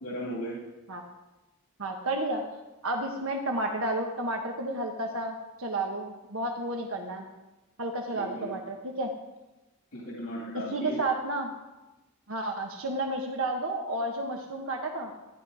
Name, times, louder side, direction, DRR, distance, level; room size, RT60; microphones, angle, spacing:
voice 1, 0.0-0.6 8.1-8.5 9.9-11.0, equal, 80° left, -3 dB, 2.5 m, -36 dB
voice 2, 1.8-2.4 2.8-7.3 7.8-9.1 10.5-11.5 12.3-15.1, right 2 dB, 75° right, 2 dB, 1.2 m, -31 dB
13.0 x 11.0 x 4.9 m, 1.1 s
head